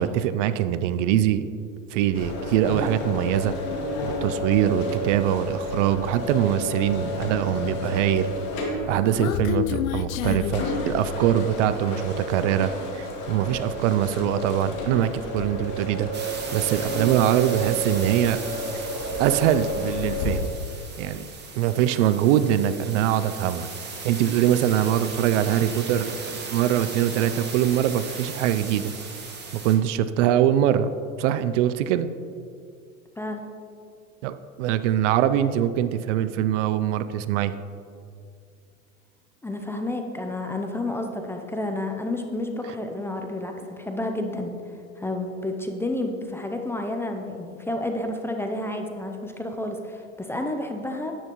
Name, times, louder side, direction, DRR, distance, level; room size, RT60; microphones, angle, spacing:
voice 1, 0.0-1.5 1.9-3.5 4.0-8.3 8.9-18.4 19.2-20.5 21.0-21.3 21.6-23.7 24.0-28.9 29.5-30.9 31.2-32.1 34.2-37.5, right 11 dB, 60° right, 13 dB, 0.6 m, -23 dB
sound 1, 2.1-20.3, equal, 45° left, 2.2 m, -31 dB
Human voice, 8.6-11.6, left 11 dB, 75° left, 0.5 m, -30 dB
sound 2, 16.1-29.8, right 4 dB, 25° right, 1.6 m, -37 dB
voice 2, 39.4-44.6 45.0-51.1, left 1 dB, 5° left, 4 dB, 0.5 m, -30 dB
10.0 x 9.1 x 3.0 m, 2.4 s
hypercardioid pair, 105°, 42 cm